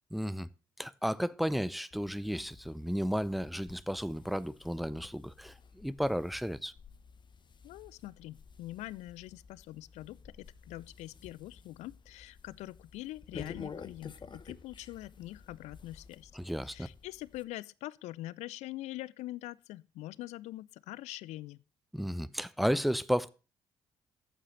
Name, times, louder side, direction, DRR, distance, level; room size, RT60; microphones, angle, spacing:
voice 1, 0.1-0.5 0.8-6.7 16.3-16.9 21.9-23.3, equal, ahead, 0.6 m, -33 dB
sound 1, 1.9-17.4, left 5 dB, 35° left, 0.9 m, -51 dB
voice 2, 7.6-16.3 16.6-21.6, left 16 dB, 65° left, 0.4 m, -44 dB
8.7 x 7.5 x 6.4 m
hypercardioid pair, 45°, 13 cm